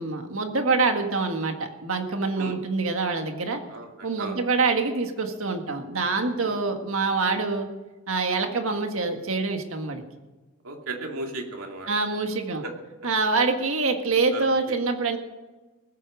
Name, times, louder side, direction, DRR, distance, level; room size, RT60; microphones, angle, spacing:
voice 1, 0.0-3.6 4.0-7.7 8.1-10.0 11.9-12.6 13.0-15.2, right 3 dB, 75° right, 5 dB, 1.7 m, -25 dB
voice 2, 3.7-4.4 6.4-6.6 8.4-8.6 10.6-11.9 12.6-12.7 14.3-14.8, right 2 dB, 90° right, 2 dB, 2.5 m, -36 dB
20.0 x 8.4 x 6.3 m, 1.2 s
head